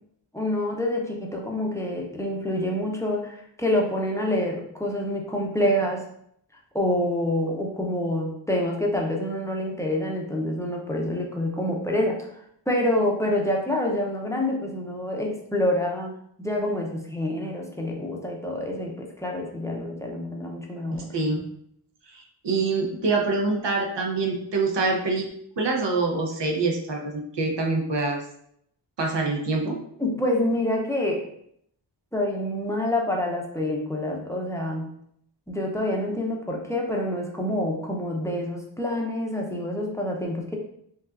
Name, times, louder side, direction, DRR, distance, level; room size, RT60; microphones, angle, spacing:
voice 1, 0.3-6.0 6.7-12.3 12.7-16.1 16.4-21.1 30.0-31.2 32.1-34.9 35.5-40.6, left 1 dB, 5° left, 0 dB, 0.6 m, -27 dB
voice 2, 22.1-25.3 25.6-28.2 29.0-29.8, right 3 dB, 65° right, 1 dB, 0.8 m, -25 dB
5.4 x 2.3 x 2.5 m, 0.71 s
wide cardioid pair, 100°, 45 cm